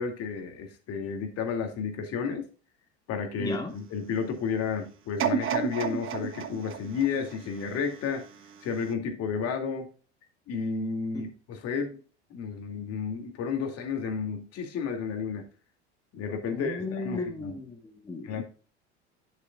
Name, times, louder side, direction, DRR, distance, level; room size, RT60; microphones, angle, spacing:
voice 1, 0.0-2.4 3.1-8.2 8.6-9.9 10.5-12.0 12.3-15.5 16.1-17.5 18.2-18.4, left 6 dB, 45° left, 4 dB, 2.3 m, -32 dB
voice 2, 3.4-3.7 11.1-11.3 16.5-18.4, left 3 dB, 10° left, 4 dB, 1.3 m, -35 dB
sound 1, 5.2-8.3 8.8-8.9, right 7 dB, 35° right, 1.2 m, -31 dB
10.5 x 7.0 x 2.3 m, 0.37 s
hypercardioid pair, 80°, 34 cm